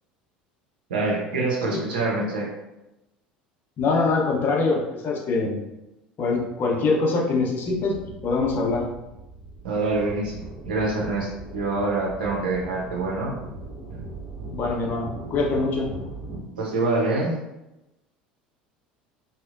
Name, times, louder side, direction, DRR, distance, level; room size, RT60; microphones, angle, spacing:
voice 1, 0.9-2.5 9.6-13.4 14.0-14.1 16.6-17.4, right 2 dB, 75° right, -3 dB, 0.7 m, -26 dB
voice 2, 3.8-5.6 6.2-8.0 8.2-8.8 14.5-15.9, left 3 dB, 40° left, -1 dB, 0.6 m, -23 dB
sound 1, 7.7-16.4, right 3 dB, 40° right, 1.0 m, -39 dB
2.8 x 2.1 x 2.4 m, 0.94 s
figure-of-eight pair, 70°, 5 cm